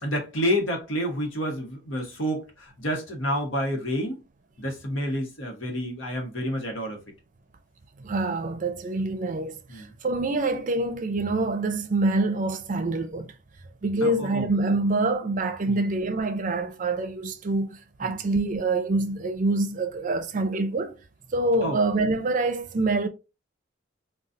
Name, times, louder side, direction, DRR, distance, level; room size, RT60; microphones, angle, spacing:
voice 1, 0.0-4.2 4.6-7.0 9.7-9.9 14.0-14.4 15.7-15.8 18.0-18.2 21.6-21.8, equal, 90° left, 1.1 m, -29 dB
voice 2, 8.0-13.3 13.8-20.9 21.3-23.1, right 2 dB, 40° right, 0.5 m, -26 dB
3.9 x 2.3 x 2.5 m
head